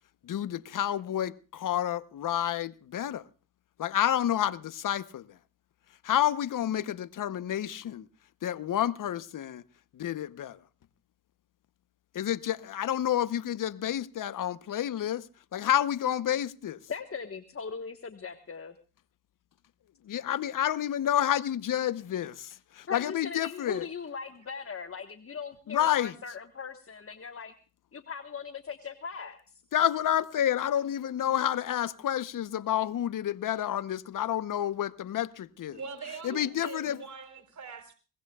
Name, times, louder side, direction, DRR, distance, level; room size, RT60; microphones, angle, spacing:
voice 1, 0.2-3.3 3.8-5.4 6.0-8.1 8.4-9.6 9.9-10.6 12.1-16.8 20.0-23.9 25.7-26.2 29.7-35.8 36.2-37.0, left 11 dB, 60° left, 0.9 m, -29 dB
voice 2, 16.9-18.7 22.9-27.5 27.9-29.6, left 6 dB, 40° left, 1.4 m, -39 dB
voice 3, 35.7-37.9, right 5 dB, 50° right, 3.8 m, -42 dB
23.0 x 19.5 x 2.4 m
supercardioid pair, 55°, 35 cm